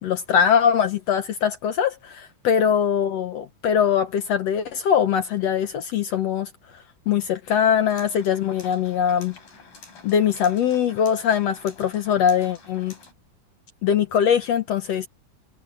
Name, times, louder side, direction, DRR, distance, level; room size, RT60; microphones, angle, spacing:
voice 1, 0.0-6.5 7.1-9.3 10.0-12.9 13.8-15.1, left 8 dB, 65° left, 1.8 m, -22 dB
sound 1, 7.8-13.1, left 4 dB, 90° left, 9.2 m, -48 dB
omnidirectional pair, 3.9 m